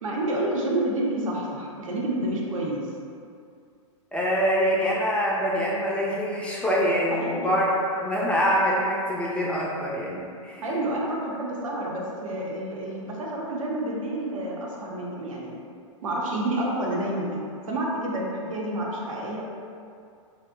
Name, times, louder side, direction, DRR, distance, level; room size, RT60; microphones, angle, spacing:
voice 1, 0.0-2.9 7.1-7.6 10.6-15.6 16.0-19.4, right 1 dB, 85° right, -3 dB, 0.7 m, -29 dB
voice 2, 4.1-10.6, equal, 5° left, -5 dB, 0.3 m, -25 dB
2.5 x 2.1 x 3.5 m, 2.4 s
hypercardioid pair, 125°, 17 cm